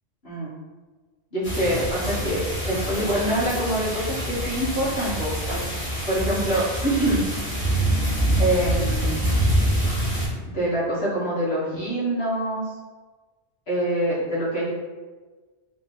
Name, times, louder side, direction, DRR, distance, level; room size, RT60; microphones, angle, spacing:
voice 1, 0.2-0.5 1.3-5.3 6.1-7.2 8.4-9.3 10.5-12.7 13.7-14.7, right 1 dB, 60° left, -8 dB, 1.8 m, -25 dB
sound 1, 1.4-10.3, right 1 dB, 30° left, 1.6 m, -25 dB
3.5 x 3.3 x 4.1 m, 1.3 s
omnidirectional pair, 1.2 m